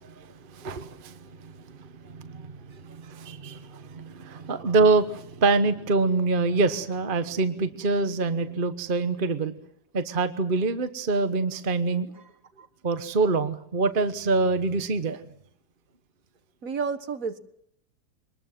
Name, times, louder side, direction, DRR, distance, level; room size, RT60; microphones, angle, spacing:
voice 1, 0.5-1.5 1.8-9.5 9.9-12.1 12.8-15.2, right 3 dB, 35° right, 10 dB, 1.2 m, -25 dB
voice 2, 16.6-17.4, right 5 dB, 55° right, 10 dB, 1.9 m, -32 dB
25.0 x 20.5 x 7.6 m, 0.72 s
omnidirectional pair, 1.7 m